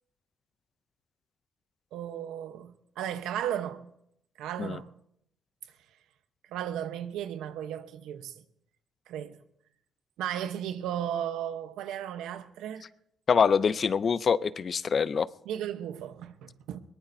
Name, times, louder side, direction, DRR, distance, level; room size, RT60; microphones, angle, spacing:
voice 1, 1.9-3.9 4.4-4.9 6.5-8.3 9.1-9.4 10.2-12.9 15.4-16.8, right 10 dB, 90° right, 0.9 m, -35 dB
voice 2, 13.3-15.3, left 6 dB, 45° left, 0.5 m, -25 dB
21.5 x 19.0 x 2.7 m
cardioid pair, 90°, 0 cm